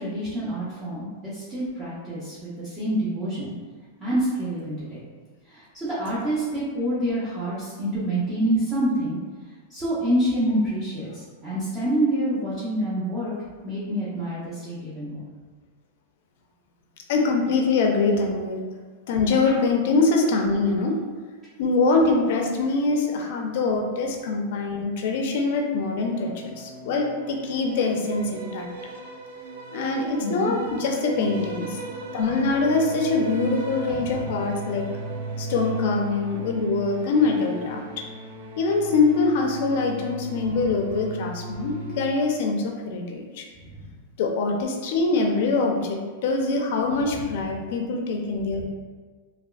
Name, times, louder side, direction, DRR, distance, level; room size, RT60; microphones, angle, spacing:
voice 1, 0.0-3.5 4.0-5.0 5.5-9.2 9.7-13.3 13.6-15.1 30.2-30.5 33.9-34.0 40.4-40.6 43.6-43.8 48.6-48.7, right 1 dB, 20° right, -11 dB, 0.8 m, -27 dB
voice 2, 17.1-18.6 19.1-21.0 21.6-28.7 29.7-31.8 32.1-34.9 35.4-38.1 38.6-43.5 44.2-48.7, left 3 dB, 65° left, 2 dB, 0.5 m, -24 dB
sound 1, 26.0-42.1, right 2 dB, 75° right, 0.5 m, -36 dB
3.4 x 2.4 x 2.3 m, 1.4 s
supercardioid pair, 135°, 0 cm